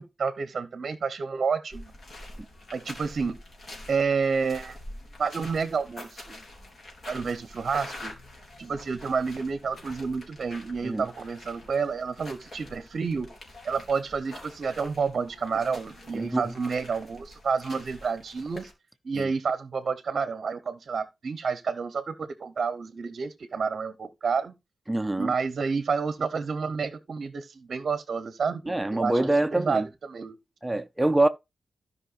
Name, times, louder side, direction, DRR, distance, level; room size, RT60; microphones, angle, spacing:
voice 1, 0.0-1.9 2.7-3.4 3.9-4.8 5.2-6.4 7.1-8.1 8.6-13.3 13.6-18.7 19.0-24.5 25.2-29.2 29.5-30.4, right 5 dB, 50° right, 0.8 m, -29 dB
sound 1, 1.7-18.7, left 1 dB, 50° left, 3.5 m, -46 dB
voice 2, 16.1-16.4 19.1-19.3 24.9-25.3 28.7-29.9 30.6-31.3, right 2 dB, 10° right, 0.5 m, -25 dB
15.5 x 5.4 x 2.4 m
wide cardioid pair, 145°, 0 cm